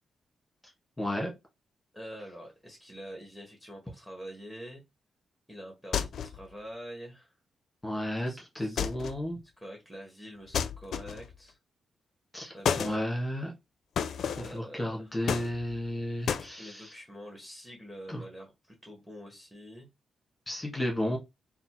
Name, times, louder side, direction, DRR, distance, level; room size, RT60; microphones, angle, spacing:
voice 1, 1.0-1.3 7.8-9.4 12.3-13.5 14.4-16.9 18.1-18.2 20.5-21.2, left 1 dB, 15° left, 0 dB, 1.8 m, -33 dB
voice 2, 1.9-4.8 5.5-7.3 8.3-8.9 9.6-11.6 12.5-13.1 14.3-15.1 16.6-19.9, equal, ahead, 1 dB, 1.5 m, -46 dB
sound 1, 5.9-6.5 8.8-9.3 10.5-11.4 12.6-13.0 14.0-14.6 15.3-15.9 16.3-16.5, left 7 dB, 70° left, 0.4 m, -31 dB
4.0 x 2.4 x 4.4 m, 0.22 s
cardioid pair, 90°, 0 cm